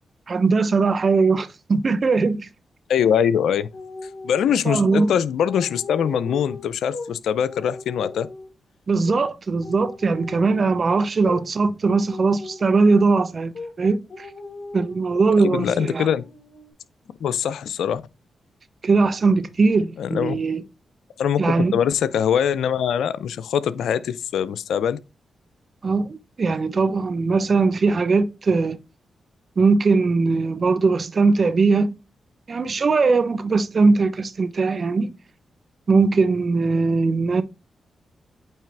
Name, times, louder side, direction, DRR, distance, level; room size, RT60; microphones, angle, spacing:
voice 1, 0.3-2.5 4.6-5.1 8.9-14.3 14.7-16.1 18.8-20.6 21.4-21.7 25.8-28.8 29.6-31.9 32.5-35.1 35.9-37.4, right 4 dB, 50° right, 0.7 m, -20 dB
voice 2, 2.9-3.7 4.2-8.3 15.4-16.2 17.2-18.0 20.0-20.4 21.2-25.0, left 8 dB, 80° left, 0.4 m, -22 dB
sound 1, 3.7-4.5 4.9-5.1 5.4-7.1 7.4-8.5 9.1-9.3 9.6-10.9 11.3-11.5 11.8-13.2 13.5-13.8 14.1-15.3 15.6-15.8 16.2-16.7, left 3 dB, 65° left, 1.5 m, -38 dB
8.8 x 3.2 x 3.4 m
supercardioid pair, 45°, 0 cm